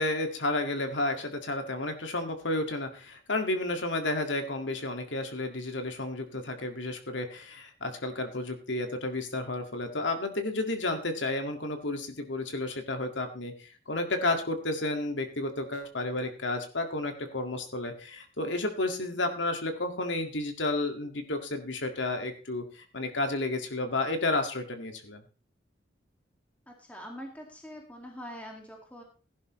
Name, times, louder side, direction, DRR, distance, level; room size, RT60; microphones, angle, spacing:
voice 1, 0.0-13.5 13.9-22.6 22.9-25.2, left 2 dB, 75° left, 5 dB, 2.0 m, -31 dB
voice 2, 26.7-29.0, equal, 10° left, 0 dB, 2.1 m, -44 dB
16.0 x 11.0 x 3.2 m, 0.36 s
head